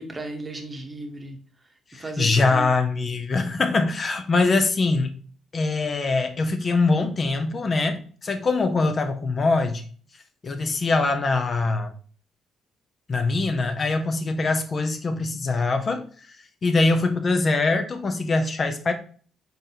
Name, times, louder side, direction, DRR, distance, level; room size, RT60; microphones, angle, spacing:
voice 1, 0.0-1.4 1.9-2.7, right 2 dB, 30° right, 4 dB, 0.9 m, -35 dB
voice 2, 1.9-5.2 5.5-9.9 10.4-11.9 13.1-16.4 16.6-18.9, left 3 dB, 45° left, 7 dB, 0.6 m, -23 dB
3.9 x 3.7 x 2.8 m, 0.43 s
supercardioid pair, 65°, 0 cm